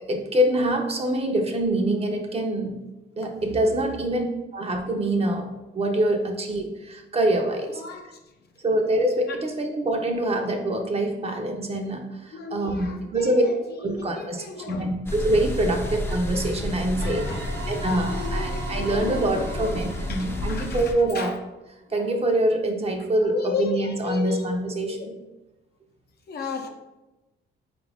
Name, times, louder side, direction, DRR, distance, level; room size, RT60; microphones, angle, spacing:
voice 1, 0.1-2.8 3.2-4.3 4.5-7.8 8.6-13.4 13.8-17.3 17.7-21.3 21.9-24.9, right 1 dB, 30° right, 3 dB, 0.6 m, -25 dB
voice 2, 3.5-4.2 7.7-8.1 9.3-9.4 12.3-15.0 15.6-16.0 17.0-21.4 21.9-22.2 23.0-25.1 26.3-26.7, left 6 dB, 55° left, 3 dB, 0.6 m, -36 dB
sound 1, 15.1-20.9, left 1 dB, 10° left, 0.5 m, -31 dB
sound 2, 17.0-21.5, right 3 dB, 70° right, 0.9 m, -39 dB
4.3 x 2.5 x 3.4 m, 1.0 s
cardioid pair, 90°, 20 cm